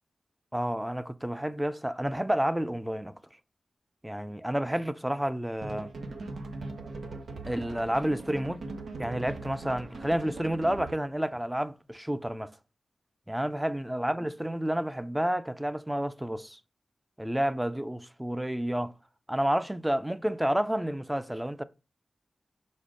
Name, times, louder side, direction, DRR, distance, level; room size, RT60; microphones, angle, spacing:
voice 1, 0.5-3.2 4.0-5.9 7.5-8.7 9.0-12.5 13.3-16.6 17.2-18.9 19.3-21.6, right 1 dB, 10° right, 0.5 m, -30 dB
sound 1, 5.6-11.1, right 3 dB, 90° right, 1.0 m, -40 dB
6.1 x 4.3 x 4.9 m
wide cardioid pair, 95°, 0 cm